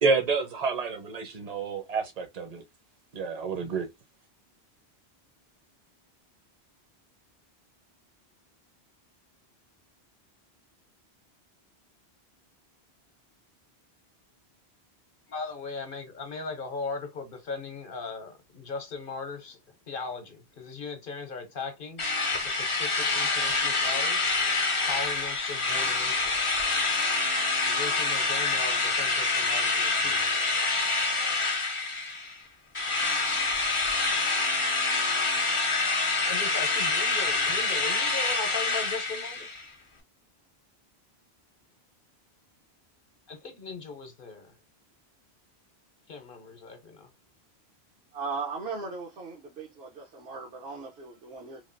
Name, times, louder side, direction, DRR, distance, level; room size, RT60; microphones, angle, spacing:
voice 1, 0.0-2.6 3.1-3.9, right 4 dB, 40° right, 0.8 m, -28 dB
voice 2, 15.3-19.6 19.9-22.0 22.4-24.2 24.8-26.7 27.6-30.2 36.2-39.5 43.3-44.5 46.1-47.1, left 4 dB, 55° left, 0.9 m, -38 dB
Drill, 22.0-32.4 32.7-39.6, left 3 dB, 35° left, 0.6 m, -27 dB
voice 3, 48.1-51.6, right 4 dB, 70° right, 1.1 m, -37 dB
3.2 x 2.4 x 2.5 m
omnidirectional pair, 1.1 m